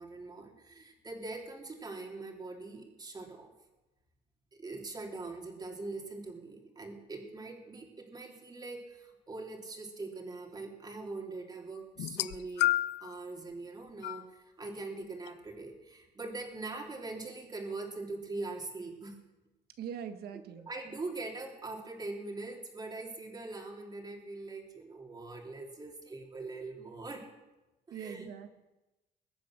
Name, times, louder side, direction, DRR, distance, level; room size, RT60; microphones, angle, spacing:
voice 1, 0.0-3.5 4.6-12.7 13.0-19.2 20.7-27.3 27.9-28.3, right 3 dB, 25° right, 1 dB, 3.2 m, -42 dB
sound 1, 12.0-13.1 14.0-14.2 15.3-15.4, left 16 dB, 85° left, 0.6 m, -30 dB
voice 2, 19.8-20.7 27.9-28.6, right 8 dB, 70° right, 8 dB, 1.5 m, -42 dB
22.0 x 8.5 x 6.3 m, 1.0 s
cardioid pair, 110°, 17 cm